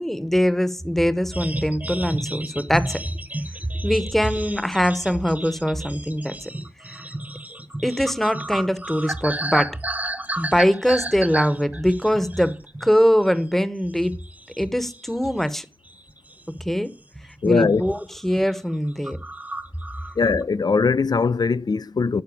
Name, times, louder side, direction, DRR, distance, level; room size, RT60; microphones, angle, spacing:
voice 1, 0.0-3.0 3.8-6.5 6.9-7.0 7.8-9.7 10.4-12.6 12.8-14.1 14.6-15.6 16.6-16.9 17.4-19.2, equal, 5° left, 0.9 m, -22 dB
sound 1, 1.3-13.0 13.3-13.6 14.0-15.6 15.9-16.6 17.1-17.4 17.6-18.0 18.3-18.4 18.7-18.8 19.0-20.4, right 1 dB, 20° right, 0.9 m, -32 dB
voice 2, 17.4-17.8 20.2-22.2, left 5 dB, 65° left, 0.4 m, -20 dB
12.0 x 4.5 x 8.4 m
wide cardioid pair, 55°, 8 cm